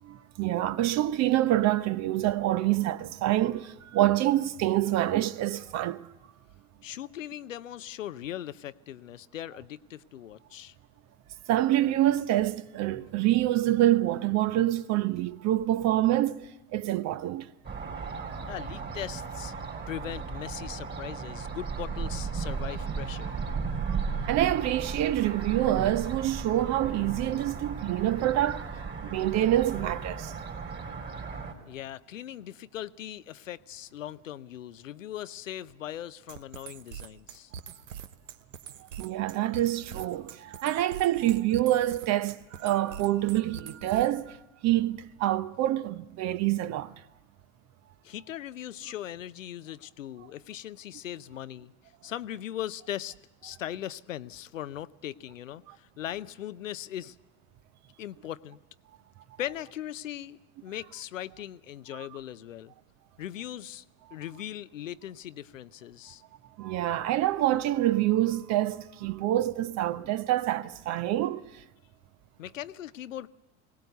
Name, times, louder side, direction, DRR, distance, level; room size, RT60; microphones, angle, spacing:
voice 1, 0.0-6.0 11.5-17.5 19.7-19.8 23.8-24.0 24.3-28.7 29.0-30.3 39.0-44.4 44.6-46.9 66.6-71.4, right 14 dB, 45° right, 0.9 m, -26 dB
voice 2, 6.8-10.7 18.5-19.5 19.9-23.4 31.7-37.5 48.0-51.7 52.0-53.1 53.4-57.2 58.0-58.6 59.4-62.7 63.2-63.8 64.1-66.2 72.4-73.3, left 12 dB, 80° left, 0.6 m, -39 dB
sound 1, 17.6-31.5, right 5 dB, 30° right, 3.6 m, -35 dB
sound 2, 36.3-44.3, right 8 dB, 75° right, 1.0 m, -43 dB
21.5 x 18.0 x 8.0 m
hypercardioid pair, 75°, 38 cm